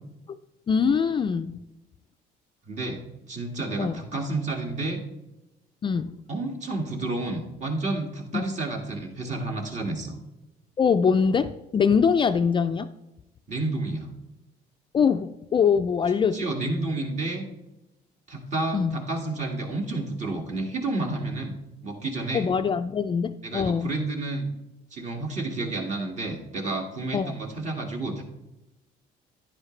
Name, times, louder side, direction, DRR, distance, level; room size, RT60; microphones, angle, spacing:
voice 1, 0.7-1.6 3.8-4.0 5.8-6.1 8.3-8.4 10.8-12.9 14.9-16.4 18.7-19.0 22.3-23.9 27.1-27.3, left 6 dB, 30° left, 10 dB, 0.4 m, -23 dB
voice 2, 2.7-3.0 3.3-5.0 6.3-10.2 13.5-14.1 16.3-17.5 18.3-22.5 23.4-24.5 24.9-28.2, right 2 dB, 45° right, 2 dB, 1.9 m, -30 dB
10.5 x 9.9 x 3.2 m, 0.96 s
cardioid pair, 110°, 17 cm